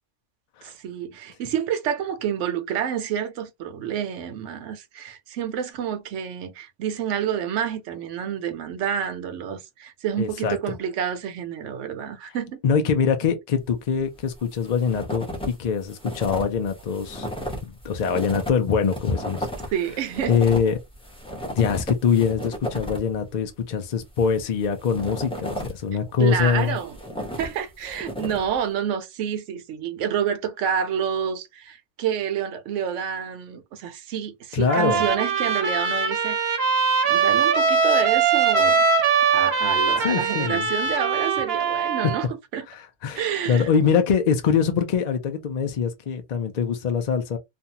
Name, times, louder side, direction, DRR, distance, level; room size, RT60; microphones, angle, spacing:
voice 1, 0.6-12.6 19.7-20.3 26.2-27.0 27.4-36.4 37.1-38.8 39.3-42.3 42.5-42.7 43.1-43.7, right 8 dB, 85° right, 1.0 m, -28 dB
voice 2, 10.2-10.8 12.6-17.3 17.6-19.5 20.3-20.8 21.5-26.8 34.5-35.1 40.0-40.7 42.7-47.4, left 6 dB, 60° left, 0.4 m, -23 dB
sound 1, 14.2-15.5 15.8-23.2 24.0-25.9 26.4-28.6, equal, 5° left, 0.7 m, -34 dB
Trumpet, 34.7-42.3, right 5 dB, 60° right, 0.9 m, -21 dB
2.5 x 2.3 x 2.7 m
omnidirectional pair, 1.2 m